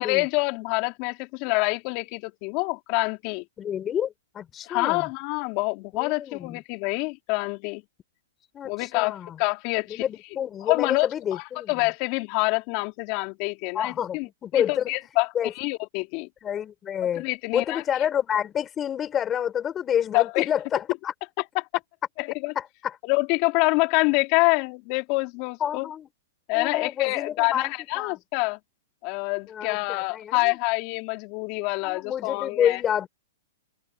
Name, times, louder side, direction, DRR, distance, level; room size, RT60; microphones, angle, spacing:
voice 1, 0.0-3.4 4.7-7.8 8.6-10.0 10.6-14.3 14.5-15.3 15.6-16.3 17.2-17.8 20.1-20.5 21.5-21.7 22.2-22.5 23.0-25.9 26.5-28.6 29.0-32.8, left 27 dB, 40° left, 4.0 m, -26 dB
voice 2, 3.6-5.1 5.9-6.6 8.5-9.4 9.9-11.9 13.7-14.9 15.3-15.5 16.4-17.3 17.5-21.1 22.5-23.0 25.6-26.1 26.5-28.2 29.5-30.6 31.8-33.1, left 9 dB, 20° left, 6.6 m, -28 dB
open air
hypercardioid pair, 150°, 0 cm